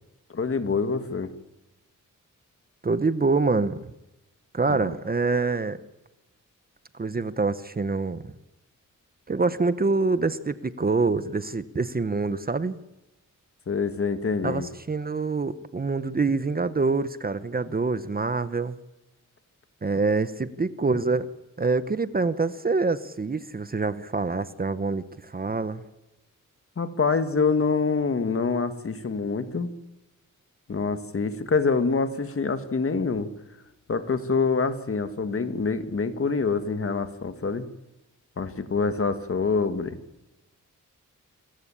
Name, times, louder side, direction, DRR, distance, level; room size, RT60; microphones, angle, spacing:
voice 1, 0.3-1.3 4.7-4.9 13.7-14.7 26.8-29.7 30.7-33.3 33.9-37.6 38.4-40.0, left 4 dB, 45° left, 9 dB, 1.7 m, -26 dB
voice 2, 2.8-3.9 4.5-5.8 6.9-8.3 9.3-12.8 14.4-18.8 19.8-21.3 21.6-25.8, right 3 dB, 30° right, 13 dB, 0.9 m, -26 dB
27.5 x 14.5 x 10.0 m, 0.98 s
wide cardioid pair, 135°, 32 cm